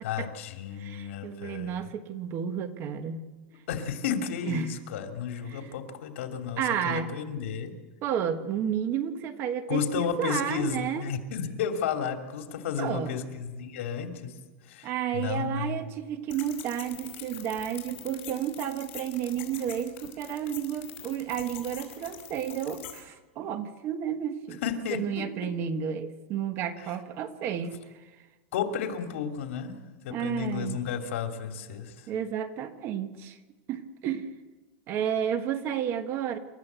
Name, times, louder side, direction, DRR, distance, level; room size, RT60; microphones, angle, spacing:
voice 1, 0.0-1.9 3.7-7.7 9.7-14.3 14.6-15.8 24.6-25.5 26.8-27.0 28.5-29.7 30.0-32.1, left 7 dB, 80° left, 5 dB, 2.8 m, -33 dB
voice 2, 0.8-3.2 4.5-4.7 5.5-5.7 6.6-7.1 8.0-11.0 12.8-13.1 14.8-24.6 24.9-27.8 30.1-30.8 32.1-33.4 33.7-34.3 34.9-36.4, right 9 dB, 35° right, 10 dB, 1.3 m, -31 dB
sound 1, 16.3-23.0, left 13 dB, 60° left, 5.2 m, -44 dB
28.5 x 13.0 x 8.2 m, 1.2 s
supercardioid pair, 165°, 7 cm